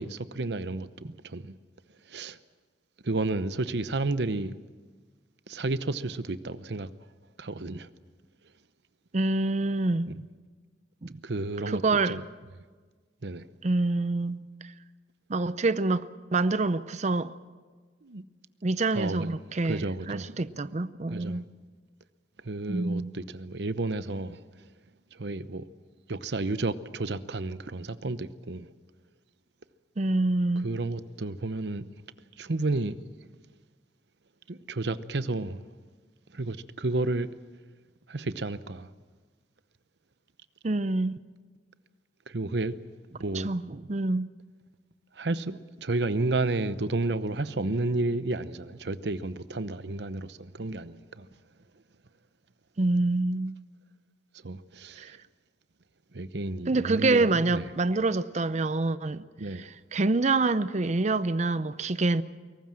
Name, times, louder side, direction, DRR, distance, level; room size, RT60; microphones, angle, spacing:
voice 1, 0.0-1.5 2.1-2.4 3.0-4.5 5.5-6.9 7.4-7.9 11.2-11.8 12.1-12.2 13.2-13.4 18.0-18.2 18.9-19.4 19.6-20.3 21.1-21.4 22.4-24.4 25.1-25.6 26.1-28.7 30.6-31.9 32.4-33.0 34.5-35.6 36.3-37.3 38.1-38.9 42.3-42.7 43.2-43.5 45.2-51.3 54.4-55.2 56.1-57.7 59.4-59.7, right 2 dB, 70° right, 0.9 m, -31 dB
voice 2, 9.1-10.2 11.0-11.1 11.7-12.2 13.6-14.7 15.3-17.3 18.6-21.4 22.7-23.1 30.0-30.7 40.6-41.1 43.3-44.3 52.8-53.6 55.0-55.2 56.7-59.2 59.5-62.2, right 2 dB, 40° right, 0.6 m, -26 dB
22.5 x 18.5 x 7.6 m
head